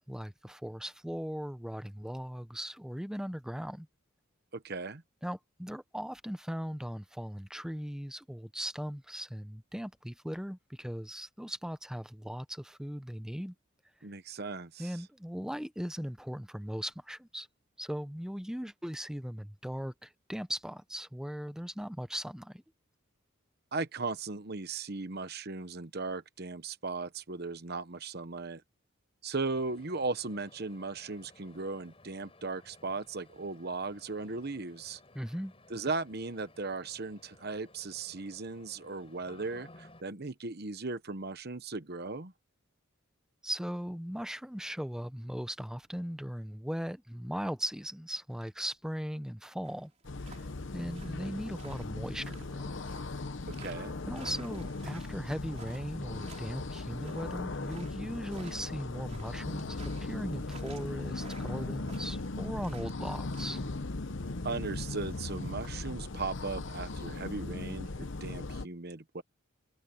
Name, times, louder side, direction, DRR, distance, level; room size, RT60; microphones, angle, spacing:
voice 1, 0.1-3.9 5.2-13.5 14.8-17.5 17.8-22.6 35.1-35.5 43.4-49.9 50.3-52.8 54.1-63.7, equal, 5° right, 0.8 m, -38 dB
voice 2, 4.5-5.0 14.0-14.9 23.7-28.6 29.2-35.0 35.7-42.3 53.6-54.0 64.4-69.2, right 3 dB, 50° right, 1.1 m, -37 dB
sound 1, 29.5-40.0, left 2 dB, 30° left, 4.2 m, -58 dB
sound 2, 49.6-63.7, right 5 dB, 35° right, 3.6 m, -55 dB
sound 3, 50.0-68.7, left 2 dB, 60° left, 0.9 m, -38 dB
head